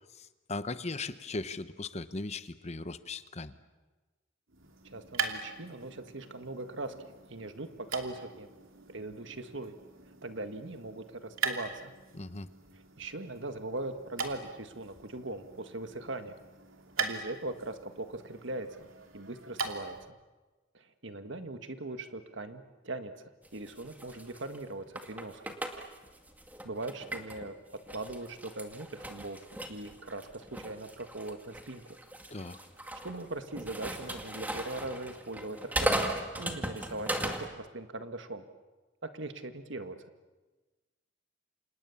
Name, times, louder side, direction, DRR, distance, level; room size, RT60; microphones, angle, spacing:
voice 1, 0.1-3.5 12.1-12.5 32.3-32.6, left 3 dB, 35° left, 12 dB, 0.9 m, -38 dB
sound 1, 4.5-20.1, right 5 dB, 85° right, 2.9 m, -41 dB
voice 2, 4.8-7.0 7.3-8.5 8.9-9.7 10.2-11.9 13.0-16.3 17.0-18.9 19.1-20.2 20.7-25.4 26.6-27.5 27.9-29.4 29.7-31.8 33.0-36.0 36.4-38.4 39.0-40.0, right 2 dB, 65° right, 8 dB, 1.8 m, -40 dB
sound 2, 23.4-27.5 27.9-37.5, right 1 dB, 10° right, 2.0 m, -37 dB
30.0 x 27.0 x 7.2 m, 1.2 s
head